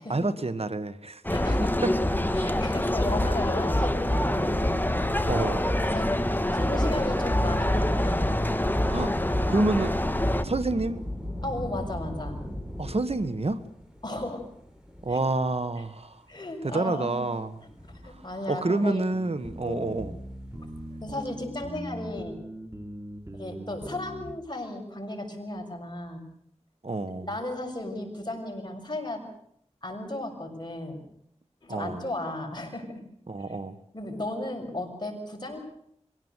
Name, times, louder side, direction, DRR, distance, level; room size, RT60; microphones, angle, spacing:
voice 1, 0.1-1.2 1.8-1.9 5.3-5.7 8.9-9.2 9.5-9.9 10.4-11.1 12.8-13.6 15.0-16.2 16.6-17.6 18.0-18.2 18.5-20.1 26.8-27.3 31.7-32.0 33.3-33.8, right 2 dB, 60° right, 12 dB, 1.4 m, -28 dB
sound 1, 1.2-10.4, left 1 dB, 15° left, 1.6 m, -25 dB
voice 2, 1.3-1.8 2.3-4.9 5.8-8.3 11.4-12.4 14.0-14.4 15.1-15.2 16.3-17.3 18.0-19.0 19.6-20.1 21.0-22.4 23.3-26.2 27.1-29.2 29.8-31.0 31.6-32.9 33.9-35.6, left 1 dB, 40° left, 2 dB, 6.7 m, -35 dB
Thunder / Rain, 6.9-15.7 16.4-16.5 17.5-18.7 20.3-21.0, equal, 5° right, 7.1 m, -40 dB
sound 2, 19.1-24.3, right 1 dB, 25° right, 3.1 m, -41 dB
24.5 x 17.0 x 8.2 m, 0.71 s
wide cardioid pair, 50°, 12 cm